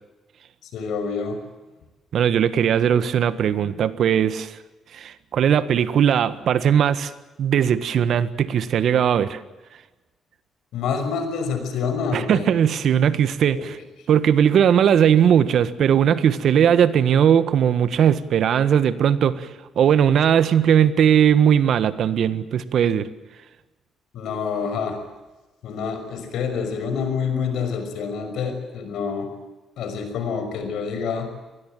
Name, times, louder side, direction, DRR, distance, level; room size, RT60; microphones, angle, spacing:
voice 1, 0.6-1.4 10.7-12.5 13.4-13.7 24.1-25.0 25.6-29.4 29.8-31.3, left 6 dB, 80° left, 6.0 m, -27 dB
voice 2, 2.1-4.6 4.9-7.1 7.4-9.4 12.1-13.8 14.1-19.5 19.7-23.1, right 8 dB, 65° right, 1.5 m, -19 dB
25.5 x 20.0 x 9.2 m
cardioid pair, 90°, 0 cm